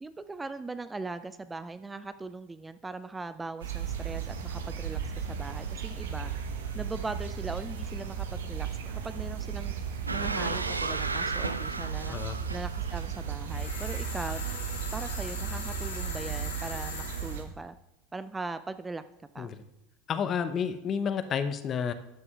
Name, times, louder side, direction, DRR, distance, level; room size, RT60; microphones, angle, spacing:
voice 1, 0.0-6.3 6.7-9.7 10.1-12.2 12.5-14.5 14.9-17.8 18.1-19.0 19.3-19.5, right 3 dB, 15° right, 12 dB, 0.3 m, -40 dB
sound 1, 3.6-17.4, right 7 dB, 70° right, 0.9 m, -35 dB
sound 2, 10.1-13.2, right 3 dB, 85° right, 0.4 m, -34 dB
sound 3, 13.5-17.4, left 4 dB, 80° left, 1.9 m, -40 dB
voice 2, 20.1-21.9, left 7 dB, 35° left, 11 dB, 0.7 m, -30 dB
12.0 x 9.6 x 2.4 m, 0.91 s
figure-of-eight pair, 75°, 0 cm